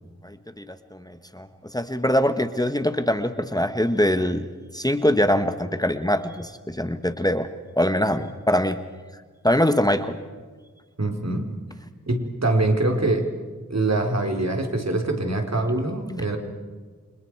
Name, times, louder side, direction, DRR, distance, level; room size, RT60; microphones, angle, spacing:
voice 1, 0.2-7.5 7.8-8.8 9.4-10.2, equal, 10° left, 9 dB, 1.4 m, -23 dB
voice 2, 11.0-11.5 12.1-13.3 13.7-16.4, right 2 dB, 55° right, 3 dB, 4.1 m, -24 dB
29.5 x 26.0 x 4.8 m, 1.5 s
wide cardioid pair, 50°, 31 cm